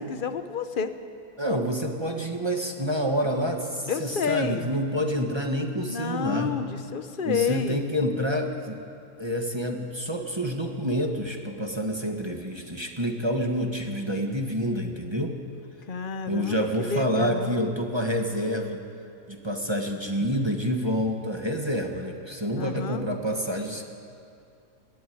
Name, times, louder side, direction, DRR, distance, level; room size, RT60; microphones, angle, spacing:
voice 1, 0.1-0.9 3.9-4.7 5.8-7.8 15.9-17.7 22.6-23.0, left 6 dB, 40° left, 10 dB, 1.0 m, -30 dB
voice 2, 1.4-6.6 7.2-8.8 9.2-15.3 16.3-18.8 19.3-23.8, equal, 20° right, 2 dB, 1.5 m, -28 dB
20.0 x 15.0 x 9.4 m, 2.4 s
omnidirectional pair, 1.6 m